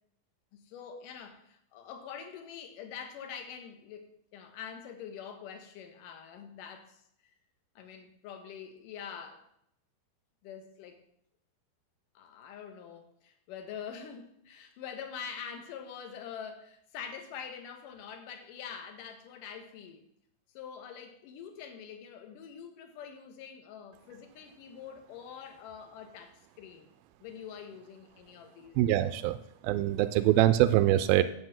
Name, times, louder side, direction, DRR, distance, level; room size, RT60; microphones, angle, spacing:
voice 1, 0.6-7.3 7.8-9.4 10.4-11.0 12.1-20.1 20.5-26.9 27.2-29.1, left 7 dB, 60° left, 6 dB, 2.7 m, -45 dB
voice 2, 28.8-29.4 29.6-31.2, right 14 dB, 85° right, 12 dB, 2.2 m, -24 dB
9.5 x 8.1 x 7.6 m, 0.73 s
omnidirectional pair, 4.8 m